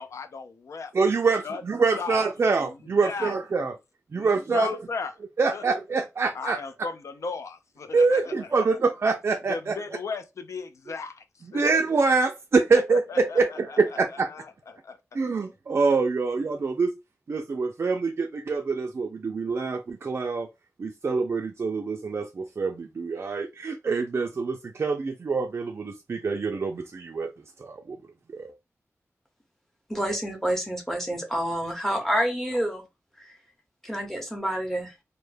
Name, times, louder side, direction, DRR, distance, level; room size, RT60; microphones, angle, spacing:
voice 1, 0.0-0.9 1.4-1.6 2.0-2.2 2.6-2.7 3.0-3.3 4.1-5.1 5.5-5.6 6.3-8.6 9.5-11.1 11.5-11.8 12.7-13.8 14.3-15.0, left 4 dB, 80° left, 0.4 m, -35 dB
voice 2, 0.9-3.7 4.1-4.7 5.4-6.6 7.9-9.7 11.5-14.3 15.1-16.9 17.3-20.5 20.8-27.3 27.6-28.0 28.3-28.5, right 4 dB, 50° right, 0.3 m, -25 dB
voice 3, 29.9-32.8 33.2-33.4 33.8-34.9, equal, 5° left, 0.8 m, -28 dB
2.1 x 2.1 x 3.1 m
wide cardioid pair, 105°, 5 cm